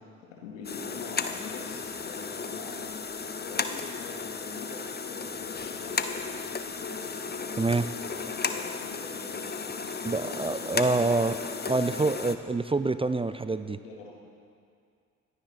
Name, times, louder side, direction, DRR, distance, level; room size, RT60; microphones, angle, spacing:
voice 1, 0.2-6.3 6.7-11.0 11.3-11.7 13.7-14.1, left 3 dB, 80° left, -2 dB, 2.6 m, -45 dB
sound 1, 0.6-12.3, left 5 dB, 25° left, 1.1 m, -34 dB
voice 2, 10.0-11.4 11.6-13.8, right 3 dB, 15° right, 12 dB, 0.6 m, -26 dB
27.5 x 9.7 x 4.3 m, 2.3 s
figure-of-eight pair, 45°, 38 cm